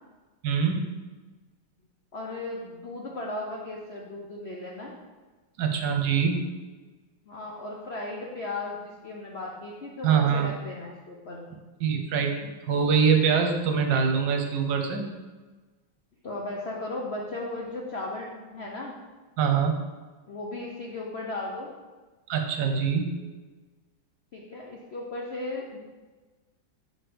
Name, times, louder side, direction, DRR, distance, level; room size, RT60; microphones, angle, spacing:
voice 1, 0.4-1.0 5.6-6.5 10.0-10.5 11.8-15.1 19.4-19.8 22.3-23.3, right 6 dB, 70° right, 4 dB, 1.3 m, -24 dB
voice 2, 2.1-4.9 7.2-11.5 16.2-18.9 20.3-21.7 24.3-25.8, left 2 dB, 75° left, -2 dB, 0.5 m, -36 dB
6.2 x 4.6 x 5.0 m, 1.3 s
omnidirectional pair, 2.2 m